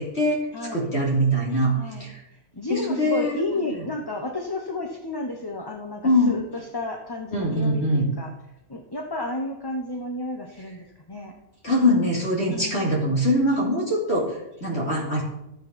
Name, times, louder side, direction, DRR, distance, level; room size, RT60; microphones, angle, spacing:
voice 1, 0.0-0.4 0.7-2.1 2.7-3.4 6.0-6.3 7.3-8.1 11.6-15.2, equal, 45° left, -3 dB, 3.1 m, -22 dB
voice 2, 0.5-0.9 1.7-8.3 8.7-11.3 12.5-13.1, left 2 dB, 20° left, 1 dB, 0.9 m, -32 dB
12.5 x 7.9 x 5.3 m, 0.86 s
omnidirectional pair, 1.5 m